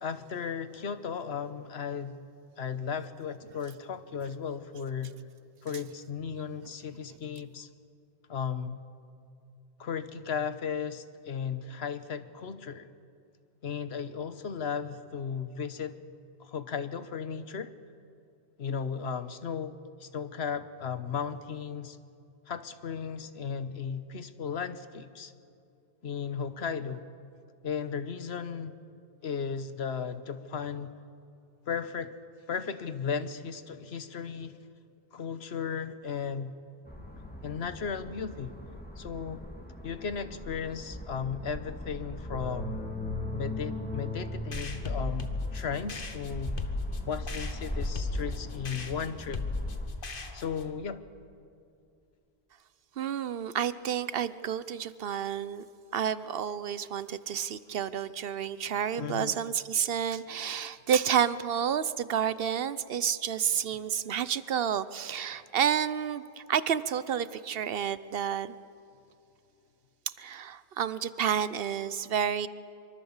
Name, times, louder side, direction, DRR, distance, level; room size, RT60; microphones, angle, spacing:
voice 1, 0.0-2.2 2.6-5.2 5.6-7.7 8.3-8.8 9.8-12.9 13.6-16.0 16.4-17.7 18.6-19.7 20.0-22.0 22.5-25.3 26.0-27.1 27.6-28.7 29.2-31.0 31.7-32.2 32.5-34.6 35.1-36.6 37.4-38.6 39.0-39.4 39.8-42.8 43.3-46.6 47.1-49.4 50.3-51.0 59.0-59.3, left 6 dB, 75° left, 12 dB, 1.2 m, -35 dB
sound 1, 36.9-49.9, left 1 dB, 10° left, 2.2 m, -38 dB
sound 2, 44.5-50.7, left 4 dB, 55° left, 1.5 m, -37 dB
voice 2, 53.0-55.6 55.9-68.6 70.2-72.5, right 8 dB, 65° right, 15 dB, 1.0 m, -30 dB
25.0 x 24.0 x 7.3 m, 2.5 s
omnidirectional pair, 1.1 m